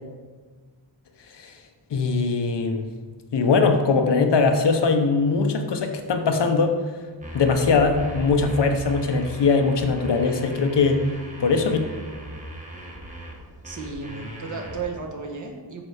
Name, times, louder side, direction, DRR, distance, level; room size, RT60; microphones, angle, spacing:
voice 1, 1.9-2.9 3.3-6.7 7.3-11.0 11.4-11.8, left 4 dB, 70° left, 6 dB, 1.0 m, -21 dB
sound 1, 7.2-14.8, equal, 15° right, 1.4 m, -38 dB
voice 2, 13.6-15.8, right 4 dB, 40° right, 0 dB, 1.5 m, -34 dB
8.7 x 6.0 x 5.0 m, 1.4 s
wide cardioid pair, 155°, 44 cm